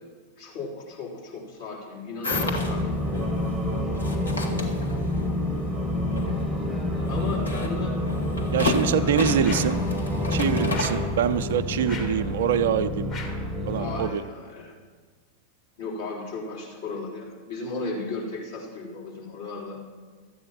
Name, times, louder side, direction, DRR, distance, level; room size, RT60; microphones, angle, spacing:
voice 1, 0.4-3.0 7.1-8.0 8.9-9.3 13.7-14.7 15.8-19.9, left 3 dB, 60° left, -4 dB, 3.7 m, -35 dB
sound 1, 2.2-11.6, left 2 dB, 80° left, 1.3 m, -33 dB
sound 2, 2.3-14.1, left 1 dB, 10° right, 1.0 m, -28 dB
voice 2, 8.5-9.8 10.3-13.1 13.7-14.2, right 8 dB, 60° right, 11 dB, 0.5 m, -25 dB
sound 3, 9.4-9.8 10.7-11.1 11.9-12.2 13.1-13.5, left 4 dB, 30° left, 1.9 m, -39 dB
13.0 x 8.6 x 5.8 m, 1.5 s
figure-of-eight pair, 90°, 0 cm